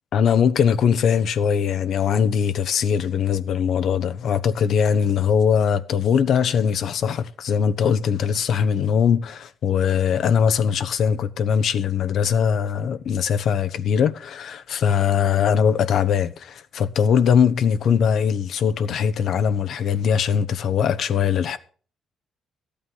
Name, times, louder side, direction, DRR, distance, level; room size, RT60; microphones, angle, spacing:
voice 1, 0.1-21.6, left 7 dB, 70° left, 0.8 m, -21 dB
13.0 x 8.7 x 5.4 m
cardioid pair, 90°, 0 cm